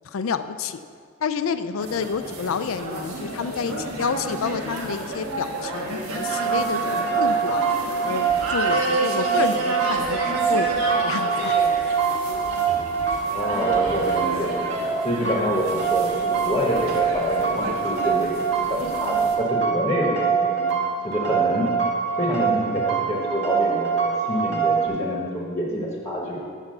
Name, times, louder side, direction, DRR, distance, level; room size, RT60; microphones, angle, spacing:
voice 1, 0.1-0.8 1.2-7.6 8.0-10.2 10.5-11.6 15.2-15.4, left 5 dB, 70° left, 12 dB, 0.4 m, -29 dB
sound 1, 1.8-19.4, right 2 dB, 85° right, 1.5 m, -31 dB
sound 2, 6.1-24.9, right 6 dB, 55° right, 1.5 m, -24 dB
voice 2, 13.1-18.4 18.7-20.7 21.0-21.7 22.2-26.4, equal, 15° left, -3 dB, 1.2 m, -27 dB
8.2 x 6.0 x 6.5 m, 2.1 s
head